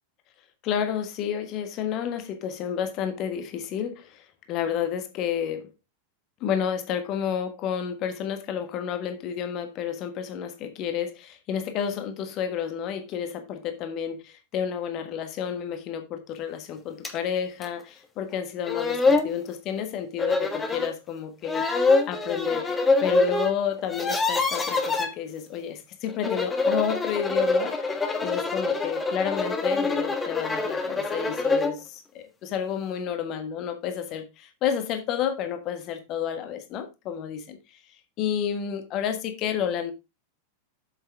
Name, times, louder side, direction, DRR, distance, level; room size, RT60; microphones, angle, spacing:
voice 1, 0.6-5.7 6.4-22.7 23.0-28.0 28.2-37.6 38.2-39.9, left 8 dB, 35° left, 1.4 m, -30 dB
sound 1, 17.0-17.2 17.6-17.7 18.4-18.5 18.7-19.3 20.2-20.9 21.4-23.5 23.8-25.1 26.1-31.8, left 3 dB, 15° left, 1.3 m, -25 dB
8.2 x 6.9 x 3.5 m
figure-of-eight pair, 90°, 0 cm